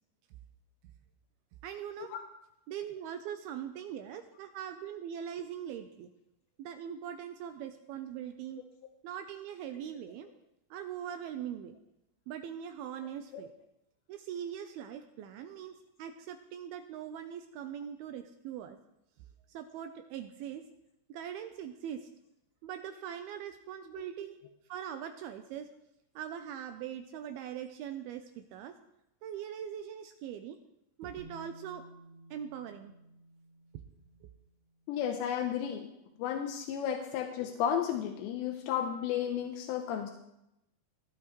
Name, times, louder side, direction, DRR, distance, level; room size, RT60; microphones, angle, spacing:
voice 1, 1.6-2.2 2.7-6.1 6.6-8.6 9.0-10.3 10.7-11.8 12.3-13.5 14.1-18.8 19.5-20.6 21.1-22.1 22.6-24.4 24.7-25.7 26.2-28.7 29.2-30.6 31.0-31.8 32.3-32.9 34.2-34.3, right 9 dB, 80° right, 7 dB, 2.3 m, -41 dB
Bass guitar, 31.2-35.1 36.2-36.3, right 1 dB, 20° right, 6.2 m, -55 dB
voice 2, 34.9-35.9 36.2-40.1, left 9 dB, 85° left, 4 dB, 3.1 m, -33 dB
17.5 x 11.0 x 3.1 m, 0.85 s
omnidirectional pair, 5.0 m